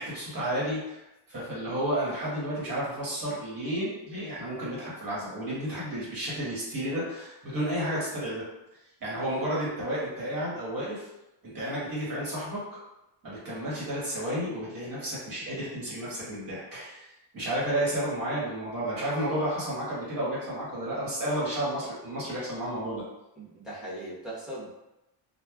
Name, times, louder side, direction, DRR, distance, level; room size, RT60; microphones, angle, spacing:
voice 1, 0.0-8.5 9.0-11.1 11.4-12.6 13.2-17.1 17.3-23.0, right 1 dB, 45° right, -7 dB, 1.4 m, -32 dB
voice 2, 23.4-24.7, right 1 dB, ahead, -8 dB, 1.1 m, -39 dB
3.1 x 2.3 x 2.4 m, 0.94 s
cardioid pair, 120°, 47 cm